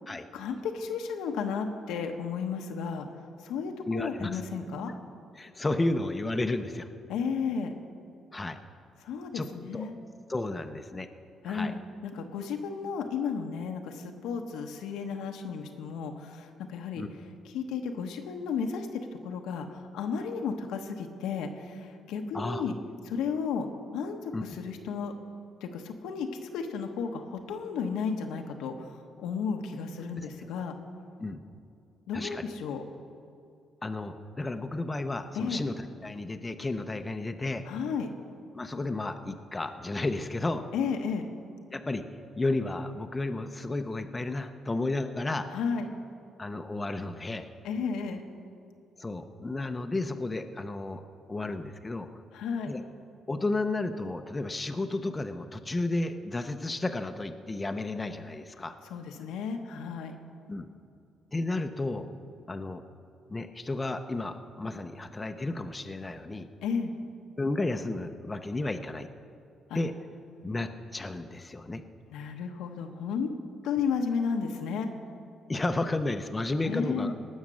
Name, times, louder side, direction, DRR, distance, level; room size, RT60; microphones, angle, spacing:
voice 1, 0.3-3.1 3.4-4.9 7.1-7.7 9.0-10.0 11.4-11.8 12.0-17.0 17.5-22.7 23.0-23.7 23.9-25.1 25.6-26.3 26.5-30.7 32.1-32.8 35.3-35.6 37.7-38.1 40.7-41.3 45.5-45.9 47.6-48.2 52.3-52.7 58.8-60.1 66.6-66.9 69.7-69.8 72.1-73.3 73.6-74.9 76.6-77.1, left 6 dB, 90° left, 4 dB, 1.1 m, -33 dB
voice 2, 3.9-4.4 5.4-6.9 8.3-8.6 9.3-9.5 9.7-9.9 10.3-11.1 11.4-11.7 17.0-17.1 22.3-22.6 24.3-24.4 30.2-30.3 31.2-31.4 32.1-32.5 33.8-35.7 36.0-37.6 38.5-40.6 41.7-42.0 42.3-45.5 46.4-47.5 49.0-52.1 52.7-52.8 53.3-58.8 60.5-60.7 61.3-62.1 62.5-62.8 63.3-66.5 67.4-69.1 69.7-69.9 70.4-71.8 75.5-77.1, left 2 dB, 20° left, 7 dB, 0.7 m, -32 dB
18.5 x 6.5 x 6.3 m, 2.5 s
cardioid pair, 90°, 0 cm